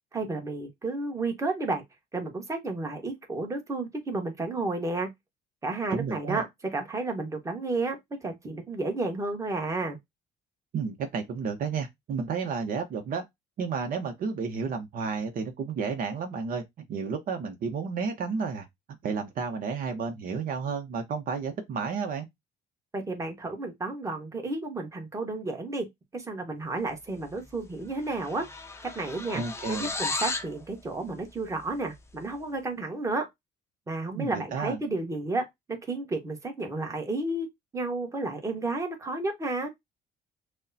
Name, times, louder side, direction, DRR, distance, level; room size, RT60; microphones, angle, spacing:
voice 1, 0.1-1.8 2.1-5.1 5.6-10.0 22.9-28.5 28.9-29.4 29.7-33.3 33.9-37.5 37.7-39.7, right 2 dB, 20° right, 1.2 m, -32 dB
voice 2, 5.9-6.4 10.7-13.2 13.6-18.7 19.0-22.3 29.3-29.9 34.1-34.8, right 5 dB, 55° right, 0.8 m, -32 dB
sound 1, 27.4-27.6 27.8-30.6, left 3 dB, 15° left, 0.6 m, -34 dB
6.2 x 2.1 x 2.7 m
cardioid pair, 110°, 17 cm